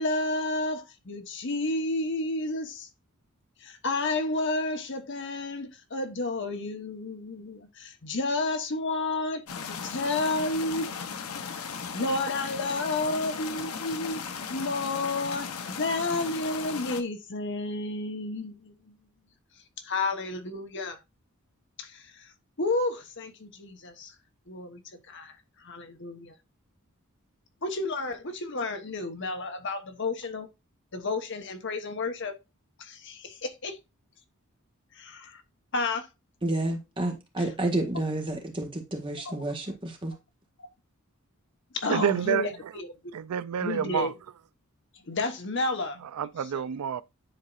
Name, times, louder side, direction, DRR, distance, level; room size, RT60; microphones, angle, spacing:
voice 1, 0.0-2.9 3.6-10.9 11.9-14.2 14.5-18.9 19.8-21.0 21.8-22.3 22.6-24.1 24.5-24.8 25.1-25.3 25.6-26.3 27.6-30.5 30.9-32.3 32.8-33.8 34.9-35.4 35.7-36.1 37.4-37.5 39.2-39.4 41.7-43.0 43.6-44.1 45.1-46.0 46.4-46.7, left 2 dB, 55° left, 1.1 m, -31 dB
sound 1, 9.5-17.0, left 6 dB, 80° left, 0.8 m, -37 dB
voice 2, 36.4-40.1, right 1 dB, 25° right, 1.6 m, -30 dB
voice 3, 41.9-42.5 43.1-44.1 46.2-47.0, right 8 dB, 90° right, 0.4 m, -28 dB
10.0 x 4.2 x 2.5 m
head